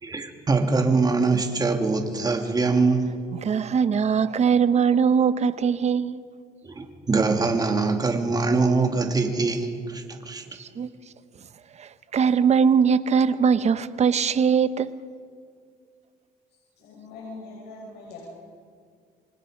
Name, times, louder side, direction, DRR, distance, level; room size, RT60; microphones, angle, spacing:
voice 1, 0.0-3.1 6.6-10.4, right 3 dB, 25° right, 2.7 m, -23 dB
voice 2, 3.4-6.2 10.6-10.9 11.8-14.9, right 6 dB, 40° right, 0.9 m, -21 dB
voice 3, 16.8-18.3, left 3 dB, 80° left, 6.7 m, -41 dB
28.5 x 24.5 x 5.2 m
cardioid pair, 110°, 17 cm